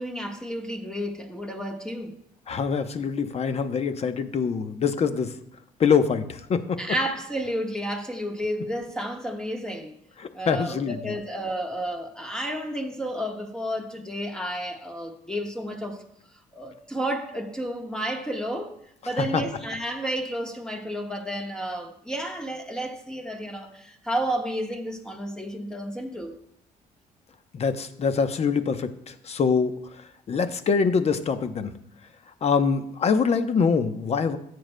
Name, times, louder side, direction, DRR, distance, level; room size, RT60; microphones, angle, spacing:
voice 1, 0.0-2.1 6.8-10.0 10.3-16.0 16.5-18.8 19.0-26.3, right 1 dB, 5° left, 1.4 m, -31 dB
voice 2, 2.5-5.4 5.8-6.6 10.2-11.1 19.1-19.4 27.5-31.7 32.4-34.4, left 5 dB, 45° left, 0.8 m, -24 dB
13.5 x 7.7 x 2.2 m
cardioid pair, 85°, 15 cm